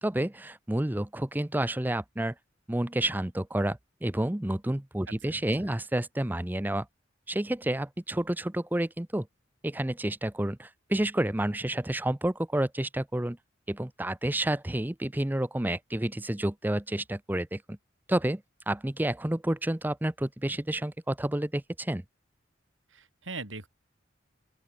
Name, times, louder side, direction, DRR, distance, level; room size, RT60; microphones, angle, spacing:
voice 1, 0.0-2.3 2.7-6.9 7.3-9.3 9.6-13.4 13.7-17.8 18.1-22.0, right 1 dB, 10° right, 0.6 m, -30 dB
voice 2, 5.1-5.7 22.9-23.7, right 3 dB, 85° right, 4.8 m, -42 dB
open air
head